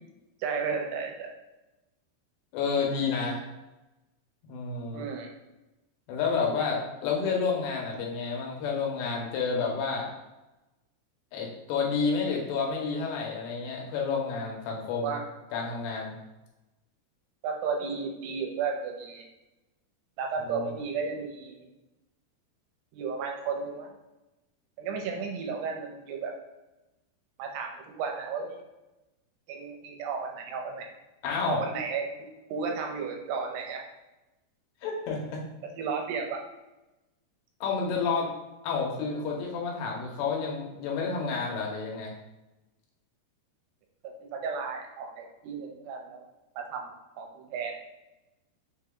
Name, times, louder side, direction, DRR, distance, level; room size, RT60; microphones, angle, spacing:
voice 1, 0.4-1.3 4.9-5.3 15.0-15.2 17.4-19.3 20.2-21.7 22.9-23.9 24.8-26.3 27.4-28.6 29.5-30.9 31.5-33.8 35.8-36.4 44.0-46.2 46.6-46.9 47.2-47.7, right 5 dB, 80° right, 1 dB, 2.7 m, -33 dB
voice 2, 2.5-3.4 4.5-5.1 6.1-10.1 11.3-15.2 15.5-16.2 20.4-20.7 31.2-31.6 34.8-35.4 37.6-38.3 38.6-42.1, left 5 dB, 85° left, -1 dB, 3.1 m, -30 dB
6.4 x 2.2 x 3.7 m, 1.0 s
omnidirectional pair, 4.8 m